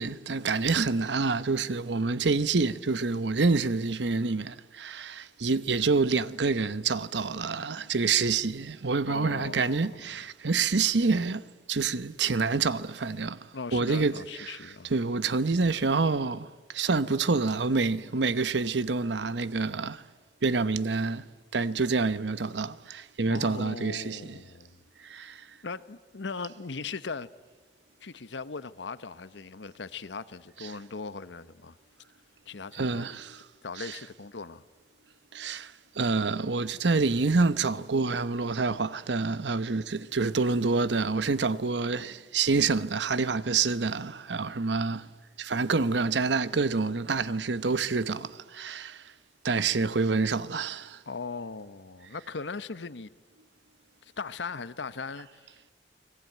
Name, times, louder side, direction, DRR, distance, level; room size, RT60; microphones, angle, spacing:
voice 1, 0.0-20.0 20.4-24.4 25.0-25.5 30.6-30.7 32.7-33.5 33.8-34.0 35.3-45.1 45.4-49.1 49.4-51.0, right 4 dB, 75° right, 0.9 m, -27 dB
voice 2, 9.1-9.9 13.5-14.9 23.3-24.8 25.6-27.3 28.0-31.8 32.5-33.0 33.6-34.6 51.1-53.1 54.0-55.7, left 4 dB, 85° left, 0.9 m, -39 dB
30.0 x 20.5 x 9.2 m
head